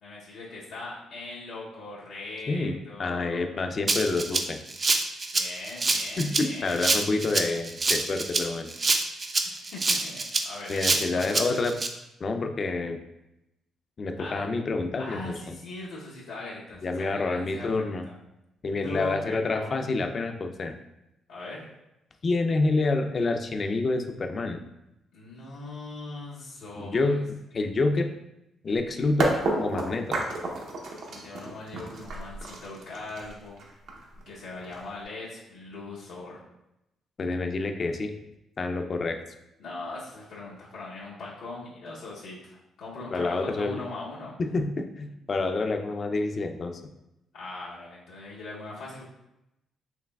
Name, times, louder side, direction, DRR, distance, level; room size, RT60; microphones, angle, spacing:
voice 1, 0.0-3.6 5.3-6.8 9.4-11.6 14.1-14.4 15.0-18.1 18.7-19.9 21.3-21.6 25.1-27.2 31.1-33.6 34.3-36.4 39.6-44.3 47.3-49.0, left 2 dB, 90° left, -8 dB, 0.9 m, -40 dB
voice 2, 2.5-4.6 6.2-8.7 10.7-11.7 12.2-13.0 14.0-15.6 16.8-18.1 18.6-20.7 22.2-24.6 26.8-28.1 28.6-30.2 37.2-38.1 38.6-39.2 43.1-43.8 44.4-46.8, left 3 dB, 40° left, 6 dB, 0.4 m, -28 dB
Rattle (instrument), 3.9-11.9, right 3 dB, 35° right, 0.4 m, -26 dB
sound 1, 29.2-35.0, right 2 dB, 70° right, 0.7 m, -31 dB
4.6 x 3.1 x 2.3 m, 0.88 s
cardioid pair, 90°, 0 cm